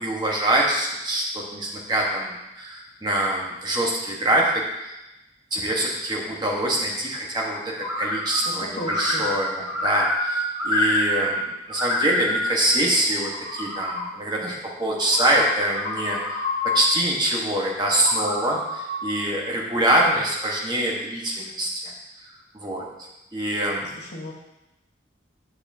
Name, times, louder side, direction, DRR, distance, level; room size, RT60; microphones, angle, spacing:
voice 1, 0.0-5.0 5.5-11.4 11.7-16.2 16.7-21.9 22.5-22.9 23.3-23.9, right 1 dB, 20° right, -2 dB, 1.2 m, -24 dB
sound 1, 7.8-8.5 8.8-11.4 11.7-12.5 13.1-14.1 15.0-16.8 17.9-19.1, left 1 dB, 40° left, 2.3 m, -27 dB
voice 2, 8.4-9.2 24.0-24.3, equal, 60° left, 0 dB, 1.2 m, -35 dB
9.6 x 6.8 x 2.7 m, 0.96 s
head